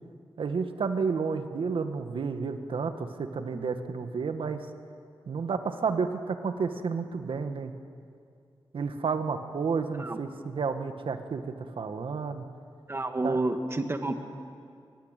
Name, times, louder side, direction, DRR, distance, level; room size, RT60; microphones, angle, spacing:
voice 1, 0.4-4.6 5.3-7.7 8.7-12.4 13.2-13.4, right 5 dB, 75° right, 7 dB, 1.6 m, -31 dB
voice 2, 12.9-14.2, right 2 dB, 25° right, 6 dB, 1.7 m, -29 dB
23.5 x 23.0 x 9.1 m, 2.4 s
wide cardioid pair, 150°, 9 cm